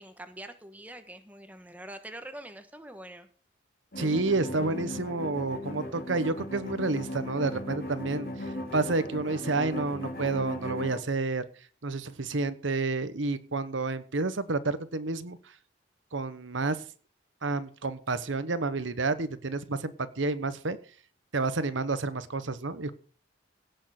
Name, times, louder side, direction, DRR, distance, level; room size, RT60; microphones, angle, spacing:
voice 1, 0.0-3.3, right 1 dB, 10° right, 8 dB, 1.3 m, -44 dB
sound 1, 3.9-11.0, left 1 dB, 50° left, 2.9 m, -37 dB
voice 2, 4.0-8.3 8.7-11.4 11.8-15.4 16.1-16.8 17.4-20.8 21.3-22.9, right 3 dB, 90° right, 13 dB, 1.1 m, -30 dB
17.0 x 6.5 x 6.5 m, 0.41 s
head